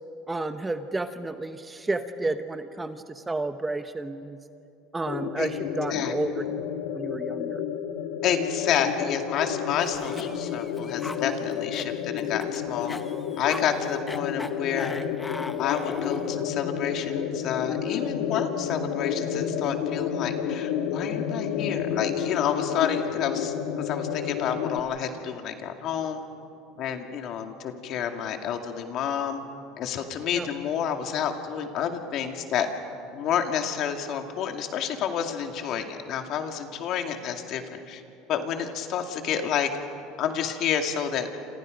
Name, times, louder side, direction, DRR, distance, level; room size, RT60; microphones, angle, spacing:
voice 1, 0.3-4.4 4.9-6.6 6.9-7.6 30.3-30.5, right 2 dB, 15° right, 9 dB, 0.9 m, -31 dB
sound 1, 5.1-24.8, left 8 dB, 85° left, 1.5 m, -30 dB
voice 2, 8.2-13.0 13.4-14.9 15.6-26.2 26.8-29.4 29.8-32.7 33.1-38.0 38.3-39.7 40.2-41.3, left 8 dB, 55° left, 5 dB, 2.3 m, -29 dB
Cough, 9.8-16.4, left 3 dB, 15° left, 0.8 m, -40 dB
28.0 x 27.5 x 5.3 m, 2.6 s
supercardioid pair, 125°, 0 cm